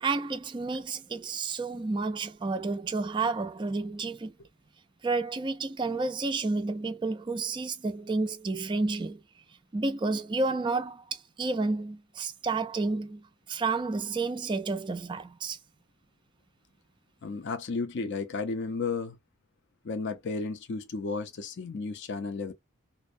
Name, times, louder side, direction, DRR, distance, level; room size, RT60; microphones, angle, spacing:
voice 1, 0.0-4.3 5.0-9.2 9.7-13.2 13.5-15.6, right 3 dB, 20° right, 0.3 m, -30 dB
voice 2, 17.2-19.2 19.8-22.5, left 4 dB, 50° left, 0.4 m, -33 dB
2.6 x 2.0 x 2.5 m
head